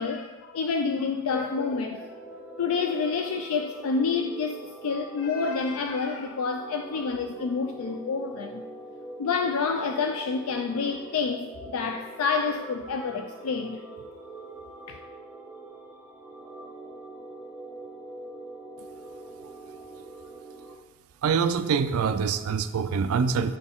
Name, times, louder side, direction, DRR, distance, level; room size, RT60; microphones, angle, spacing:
voice 1, 0.0-2.2 2.6-8.6 9.2-13.8 14.9-15.0, left 5 dB, 75° left, 0.3 m, -28 dB
sound 1, 1.4-20.7, right 2 dB, 10° right, 0.5 m, -44 dB
voice 2, 21.2-23.6, right 6 dB, 80° right, 0.4 m, -25 dB
6.8 x 4.2 x 3.6 m
head